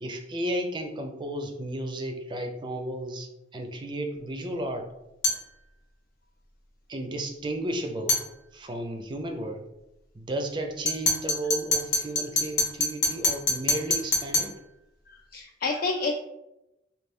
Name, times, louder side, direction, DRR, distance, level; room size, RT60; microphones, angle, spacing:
voice 1, 0.0-4.9 6.9-8.2 8.5-9.7 10.1-14.5, right 1 dB, 25° right, 4 dB, 0.4 m, -33 dB
sound 1, 5.2-5.5 8.1-8.3 10.9-14.6, left 2 dB, 80° left, 1.0 m, -26 dB
voice 2, 15.1-16.2, left 3 dB, 55° left, 1 dB, 0.3 m, -29 dB
3.1 x 2.3 x 3.5 m, 0.91 s
head